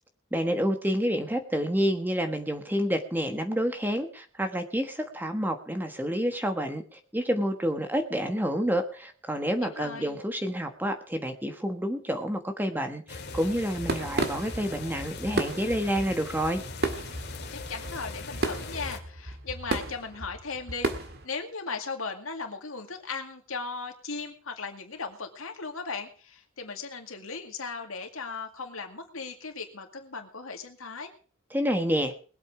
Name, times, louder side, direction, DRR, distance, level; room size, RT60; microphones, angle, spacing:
voice 1, 0.3-16.6 31.5-32.1, equal, 10° right, 6 dB, 1.3 m, -29 dB
voice 2, 9.6-10.2 17.5-31.1, left 4 dB, 80° left, 4 dB, 2.2 m, -37 dB
sound 1, 13.1-19.0, left 3 dB, 50° left, 2.3 m, -40 dB
sound 2, 13.2-21.3, right 2 dB, 50° right, 1.8 m, -34 dB
21.0 x 8.2 x 4.9 m, 0.40 s
head